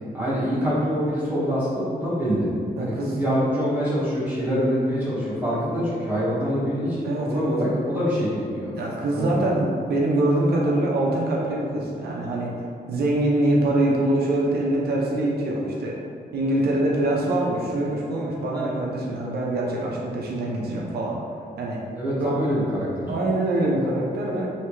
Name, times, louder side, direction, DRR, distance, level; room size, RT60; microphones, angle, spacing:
voice 1, 0.1-2.4 2.8-8.7 9.1-9.5 21.9-23.1, equal, 10° right, -11 dB, 1.3 m, -25 dB
voice 2, 2.8-3.2 7.0-7.5 8.7-12.5 12.9-16.0 16.3-21.2 21.6-21.8 22.2-22.3 23.1-24.5, right 1 dB, 80° right, -3 dB, 0.5 m, -24 dB
3.3 x 2.7 x 3.0 m, 2.3 s
wide cardioid pair, 130°, 16 cm